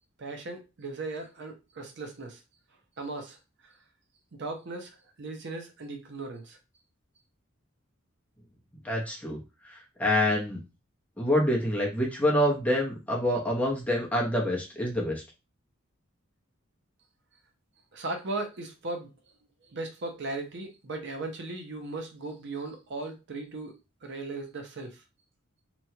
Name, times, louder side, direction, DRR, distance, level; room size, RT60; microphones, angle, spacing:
voice 1, 0.2-2.4 3.0-3.4 3.6-3.7 4.4-6.6 17.9-19.1 19.6-23.7 24.0-25.0, right 2 dB, 60° right, 4 dB, 0.6 m, -37 dB
voice 2, 8.8-9.4 10.0-10.6 11.2-15.2, left 1 dB, 5° left, -2 dB, 0.7 m, -26 dB
2.9 x 2.2 x 2.7 m, 0.26 s
head